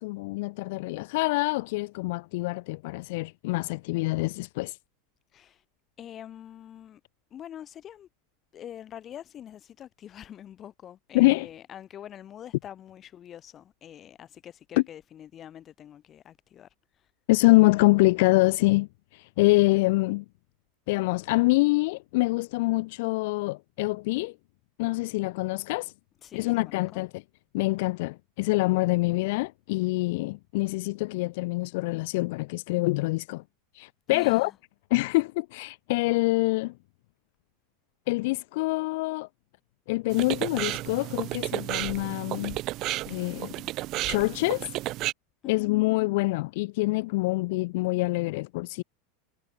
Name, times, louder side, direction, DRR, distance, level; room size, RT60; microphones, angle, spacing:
voice 1, 0.0-4.8 11.1-11.5 14.8-14.9 17.3-20.2 20.9-24.3 24.8-25.9 26.3-27.2 27.5-33.4 33.7-34.5 34.9-36.7 38.1-39.3 39.9-42.6 43.1-43.5 44.1-44.7 45.4-48.8, left 22 dB, 65° left, 0.7 m, -25 dB
voice 2, 5.3-5.6 6.0-7.0 7.3-8.1 8.5-17.1 26.2-27.0 34.1-34.6 45.4-45.7, left 10 dB, 35° left, 4.2 m, -45 dB
sound 1, 40.1-45.1, right 17 dB, 50° right, 0.3 m, -32 dB
supercardioid pair, 115°, 0 cm